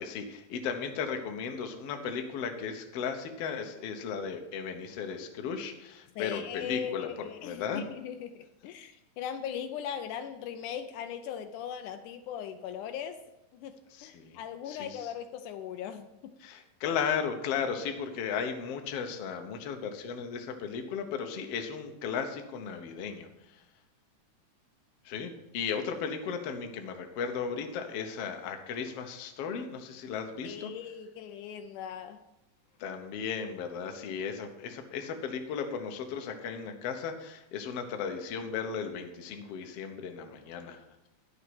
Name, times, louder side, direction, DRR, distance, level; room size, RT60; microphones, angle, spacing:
voice 1, 0.0-7.1 7.4-7.8 14.0-14.4 14.7-15.0 16.4-23.3 25.1-30.7 32.8-40.8, left 6 dB, 65° left, 5 dB, 1.7 m, -35 dB
voice 2, 6.2-13.2 13.5-16.4 30.4-32.2, left 9 dB, 80° left, 8 dB, 2.1 m, -39 dB
11.0 x 6.7 x 6.0 m, 0.93 s
omnidirectional pair, 3.6 m